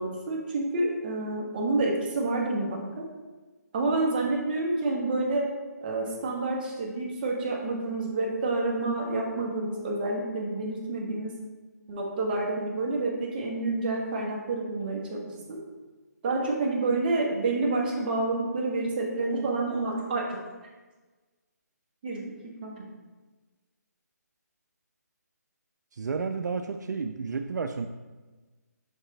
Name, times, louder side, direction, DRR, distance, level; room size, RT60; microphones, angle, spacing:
voice 1, 0.0-3.1 3.7-5.5 5.8-11.3 11.9-15.6 16.2-20.4 22.0-22.9, right 2 dB, 30° right, -2 dB, 1.2 m, -29 dB
voice 2, 25.9-27.9, right 5 dB, 75° right, 7 dB, 0.4 m, -31 dB
6.4 x 4.7 x 3.2 m, 1.3 s
hypercardioid pair, 155°, 10 cm